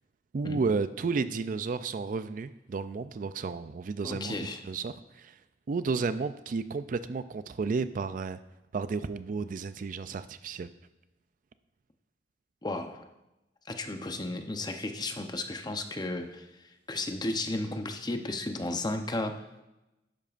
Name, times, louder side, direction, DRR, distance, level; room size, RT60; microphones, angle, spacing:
voice 1, 0.3-4.3 4.6-5.4 5.7-8.4 8.7-10.7, right 4 dB, 45° right, 13 dB, 0.4 m, -32 dB
voice 2, 4.0-4.6 12.6-13.1 13.7-16.5 16.9-19.4, left 2 dB, 25° left, 6 dB, 0.7 m, -34 dB
12.0 x 10.5 x 2.5 m, 0.95 s
head